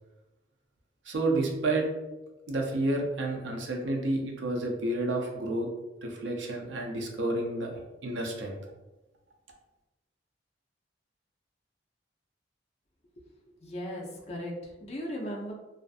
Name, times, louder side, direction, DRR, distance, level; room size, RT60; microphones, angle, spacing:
voice 1, 1.0-1.9 2.5-5.7 6.0-8.6, right 2 dB, 75° right, 1 dB, 0.5 m, -30 dB
voice 2, 13.6-15.5, equal, 35° left, -2 dB, 0.5 m, -37 dB
2.5 x 2.4 x 2.3 m, 1.1 s
head